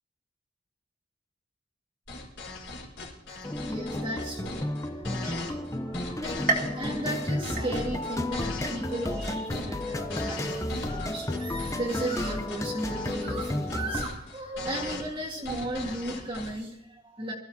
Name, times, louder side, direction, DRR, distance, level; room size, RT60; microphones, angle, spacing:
sound 1, 2.1-16.5, left 2 dB, 85° left, 4.4 m, -39 dB
voice 1, 3.3-17.3, right 1 dB, 25° right, -2 dB, 1.9 m, -35 dB
sound 2, 3.4-14.0, left 1 dB, 15° left, 0.8 m, -33 dB
sound 3, 6.5-8.2 8.6-9.2 9.7-9.8 10.8-10.9, right 3 dB, 45° right, 2.0 m, -33 dB
24.0 x 14.5 x 2.9 m, 0.78 s
head